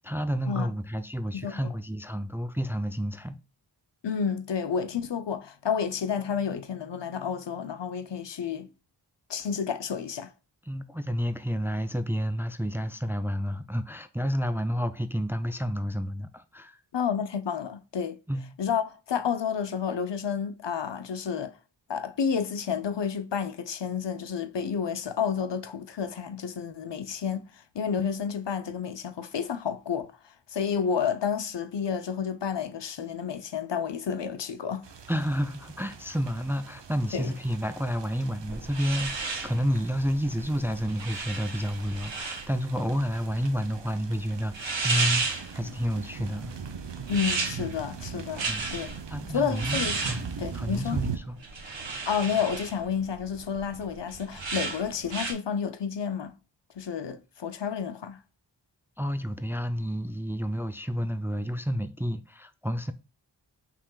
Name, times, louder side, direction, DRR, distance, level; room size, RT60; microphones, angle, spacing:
voice 1, 0.0-3.4 10.7-16.8 18.3-18.5 35.1-46.5 48.5-48.6 49.1-50.3 50.5-51.4 59.0-62.9, equal, 5° right, 0.4 m, -30 dB
voice 2, 4.0-8.7 9.3-10.3 16.9-18.2 18.6-21.5 21.9-30.1 30.5-34.9 37.1-37.3 47.1-48.9 49.3-50.0 50.4-51.0 52.1-56.4 56.8-58.2, left 7 dB, 70° left, 0.7 m, -30 dB
sound 1, 34.8-51.2, right 6 dB, 70° right, 0.8 m, -41 dB
sound 2, 38.4-55.3, right 4 dB, 85° right, 1.2 m, -34 dB
5.7 x 3.6 x 2.3 m
wide cardioid pair, 60°, 44 cm